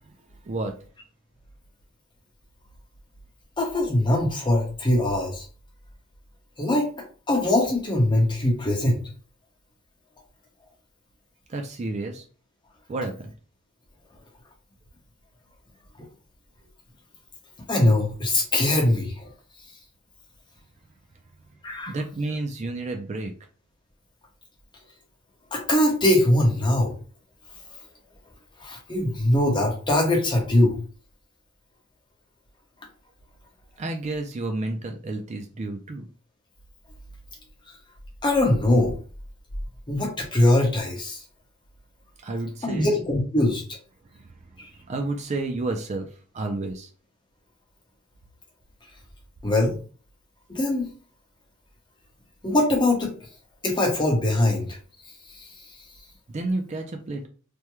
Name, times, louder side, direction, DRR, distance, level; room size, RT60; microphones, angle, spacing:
voice 1, 3.6-5.4 6.6-6.9 7.3-9.0 17.7-19.3 21.6-21.9 25.5-26.9 28.6-30.8 38.2-39.0 39.9-41.2 42.6-43.6 44.6-44.7 49.4-49.7 50.5-50.9 52.4-53.1 53.6-54.7, left 1 dB, 20° left, 0 dB, 0.9 m, -22 dB
voice 2, 11.5-12.2 12.9-13.3 21.9-23.3 33.8-36.0 42.2-43.0 44.1-44.3 44.9-46.1 46.3-46.9 56.3-57.3, right 2 dB, 35° right, 4 dB, 0.4 m, -30 dB
3.4 x 2.1 x 3.0 m, 0.39 s
head